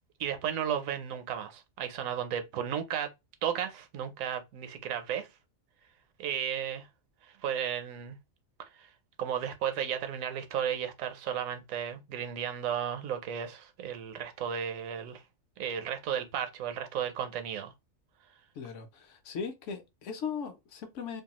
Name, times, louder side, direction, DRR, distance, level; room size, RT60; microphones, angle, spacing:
voice 1, 0.2-3.1 3.4-5.3 6.2-6.9 7.4-8.2 8.8-8.9 9.2-15.2 15.6-17.7, right 9 dB, 80° right, 1.0 m, -34 dB
voice 2, 18.6-21.2, left 6 dB, 70° left, 0.9 m, -38 dB
2.6 x 2.3 x 2.9 m
omnidirectional pair, 1.4 m